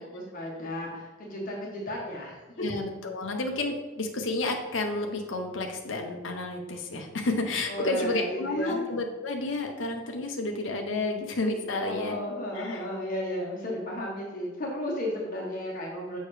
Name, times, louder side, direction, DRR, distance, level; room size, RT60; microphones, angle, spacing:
voice 1, 0.0-2.4 7.7-8.9 11.8-16.2, left 1 dB, 40° left, -3 dB, 1.2 m, -34 dB
voice 2, 2.6-12.2 12.5-12.8, left 2 dB, 70° left, 2 dB, 0.8 m, -31 dB
6.6 x 5.4 x 3.2 m, 1.2 s
head